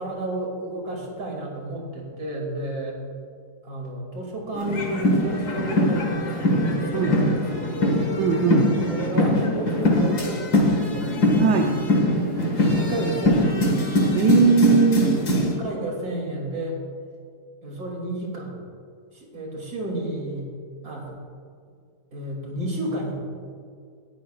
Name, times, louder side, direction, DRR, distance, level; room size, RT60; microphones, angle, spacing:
voice 1, 0.0-3.0 3.6-8.1 8.9-11.2 11.9-12.0 12.7-13.7 15.3-16.8 17.6-18.6 19.1-20.5 20.8-21.1 22.1-23.1, right 1 dB, 55° right, -1 dB, 3.0 m, -31 dB
sound 1, 4.5-15.6, left 1 dB, 65° left, 2.2 m, -22 dB
voice 2, 8.2-8.8 11.4-11.8 14.1-15.3, right 5 dB, 75° right, 3 dB, 1.4 m, -19 dB
18.5 x 11.0 x 2.3 m, 2.2 s
omnidirectional pair, 1.9 m